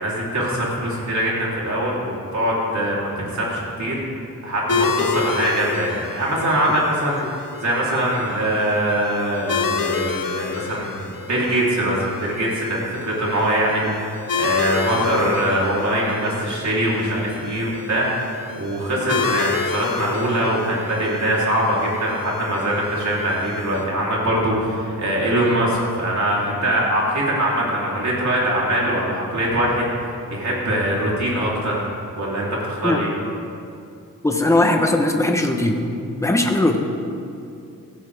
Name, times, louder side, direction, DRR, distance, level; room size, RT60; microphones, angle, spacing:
voice 1, 0.0-4.0 4.4-18.3 18.6-31.9 32.1-33.1, right 1 dB, 55° right, -5 dB, 3.6 m, -22 dB
sound 1, 4.7-23.8, left 5 dB, 70° left, 0.9 m, -30 dB
voice 2, 34.2-35.8 36.2-36.8, left 1 dB, 10° left, 3 dB, 1.1 m, -19 dB
16.0 x 14.5 x 3.5 m, 2.6 s
wide cardioid pair, 155°, 35 cm